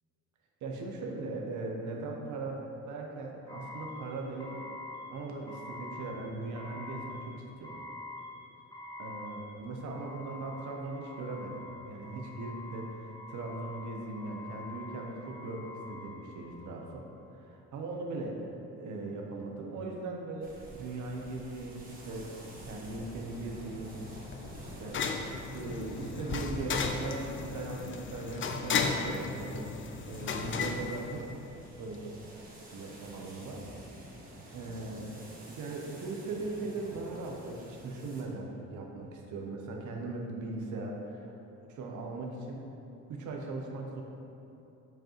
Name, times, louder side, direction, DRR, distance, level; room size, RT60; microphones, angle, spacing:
voice 1, 0.6-4.6 5.1-7.8 9.0-12.9 13.3-18.4 18.7-22.3 22.6-24.0 24.6-25.0 25.5-29.7 30.0-31.2 31.8-32.1 32.7-33.6 34.5-35.1 35.5-41.3 41.7-42.6 43.1-44.0, right 3 dB, 75° right, 0 dB, 0.8 m, -39 dB
sound 1, 3.5-17.1, left 2 dB, 15° left, 1.2 m, -46 dB
sound 2, 20.4-38.2, right 1 dB, 30° right, 1.4 m, -49 dB
sound 3, 23.4-31.7, left 5 dB, 40° left, 0.5 m, -35 dB
7.3 x 5.2 x 3.0 m, 2.9 s
cardioid pair, 90°, 30 cm